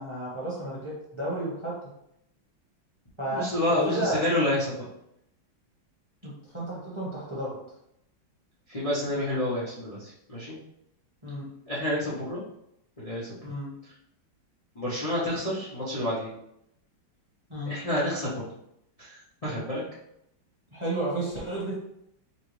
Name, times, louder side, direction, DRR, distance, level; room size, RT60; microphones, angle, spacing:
voice 1, 0.0-1.8 3.2-4.2 6.2-7.5 11.2-11.5 13.4-13.7 17.5-17.8 20.7-21.7, right 1 dB, 20° right, -6 dB, 1.0 m, -32 dB
voice 2, 3.3-4.9 8.7-10.6 11.7-12.4 13.0-13.4 14.7-16.3 17.6-18.5 19.0-19.8, left 1 dB, 35° left, -9 dB, 0.6 m, -29 dB
5.6 x 2.3 x 3.2 m, 0.77 s
omnidirectional pair, 2.2 m